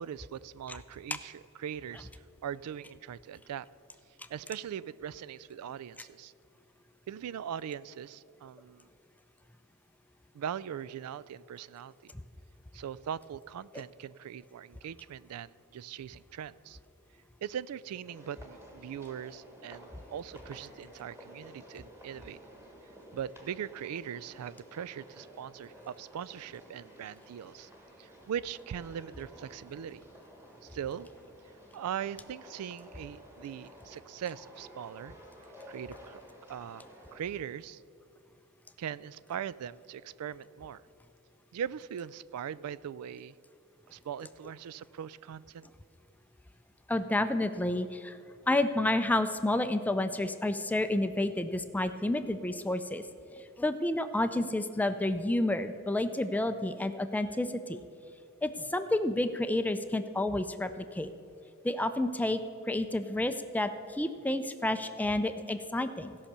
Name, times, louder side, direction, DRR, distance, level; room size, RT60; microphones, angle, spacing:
voice 1, 0.0-3.7 4.3-6.3 7.1-8.9 10.3-12.1 12.7-16.8 17.4-22.4 23.1-27.7 28.0-30.0 30.6-31.1 31.7-35.2 35.7-36.2 36.5-36.8 37.1-37.8 38.8-40.8 41.5-43.3 43.9-45.7, right 9 dB, 80° right, 19 dB, 0.3 m, -40 dB
sound 1, 18.0-37.2, equal, 10° right, 1.5 m, -53 dB
voice 2, 46.9-48.2 48.5-53.0 53.4-57.8 58.4-61.1 61.6-66.2, left 1 dB, 5° left, 10 dB, 0.4 m, -30 dB
16.0 x 5.7 x 6.7 m, 2.6 s
head